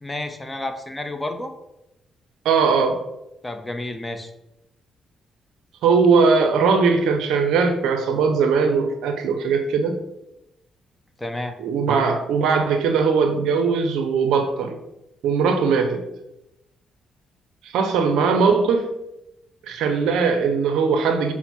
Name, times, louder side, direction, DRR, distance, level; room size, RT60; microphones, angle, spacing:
voice 1, 0.0-1.5 3.4-4.3 11.2-11.6, left 1 dB, 15° left, 6 dB, 0.6 m, -30 dB
voice 2, 2.4-3.0 5.8-10.0 11.6-14.8 15.2-16.0 17.6-18.9 19.7-21.3, right 5 dB, 75° right, 6 dB, 0.5 m, -20 dB
5.9 x 2.1 x 4.0 m, 0.89 s
hypercardioid pair, 50°, 0 cm